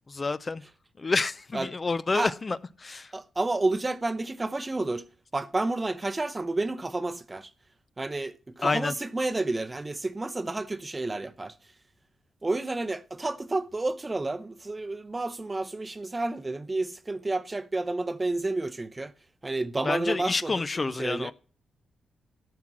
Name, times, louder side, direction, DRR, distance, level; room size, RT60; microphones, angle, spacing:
voice 1, 0.1-0.6 1.0-3.1 8.6-8.9 19.8-21.3, left 3 dB, 30° left, 0.4 m, -29 dB
voice 2, 3.1-5.1 5.3-7.5 8.0-11.6 12.4-19.1 19.4-21.3, right 2 dB, 20° right, 0.7 m, -30 dB
13.5 x 6.0 x 6.0 m
cardioid pair, 90°, 0 cm